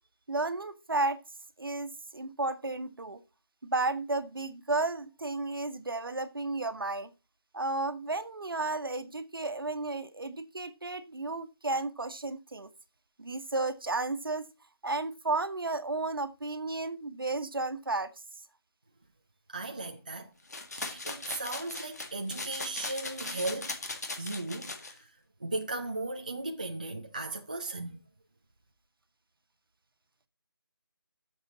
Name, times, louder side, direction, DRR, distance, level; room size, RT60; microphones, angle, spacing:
voice 1, 0.3-1.2 1.6-3.2 3.6-7.1 7.5-12.7 13.2-14.4 14.8-18.1, right 2 dB, 65° right, 1.5 m, -33 dB
voice 2, 19.5-20.3 20.7-23.8 24.2-25.1 25.4-28.0, right 2 dB, 20° right, 0.5 m, -36 dB
sound 1, 20.5-24.9, left 3 dB, 40° left, 1.9 m, -39 dB
13.5 x 7.0 x 4.1 m
figure-of-eight pair, 175°, 13 cm